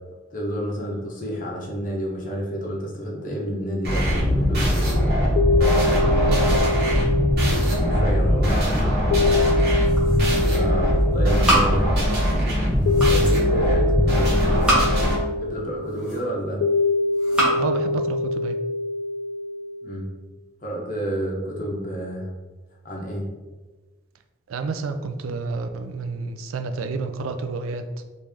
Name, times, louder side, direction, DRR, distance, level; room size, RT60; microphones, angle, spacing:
voice 1, 0.3-4.8 7.8-8.9 10.5-11.9 13.0-14.3 15.4-16.6 19.8-20.1 20.6-22.3 22.8-23.3, equal, 40° left, -2 dB, 0.8 m, -30 dB
sound 1, 3.8-15.2, equal, 50° right, 1.2 m, -21 dB
sound 2, 4.8-20.2, left 3 dB, 75° left, 0.3 m, -25 dB
voice 2, 6.1-6.8 10.5-10.7 17.5-18.5 24.5-27.8, right 4 dB, 90° right, 7 dB, 0.4 m, -29 dB
sound 3, 9.6-10.5 10.8-12.3 12.6-13.4 14.3-15.2 15.7-16.5 17.1-17.6, right 1 dB, 5° right, 1.0 m, -26 dB
3.1 x 2.6 x 3.4 m, 1.2 s
head